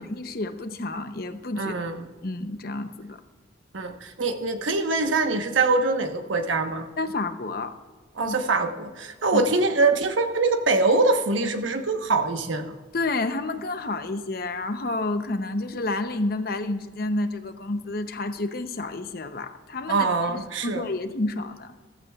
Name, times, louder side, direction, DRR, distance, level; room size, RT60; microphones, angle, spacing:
voice 1, 0.0-1.7 2.2-3.2 7.0-7.8 8.3-8.4 9.3-9.4 12.9-21.7, left 2 dB, 50° left, 9 dB, 0.7 m, -30 dB
voice 2, 1.6-2.0 3.7-6.9 8.2-12.8 19.9-20.8, right 3 dB, 80° right, 6 dB, 1.1 m, -24 dB
15.0 x 14.5 x 2.4 m, 1.4 s
head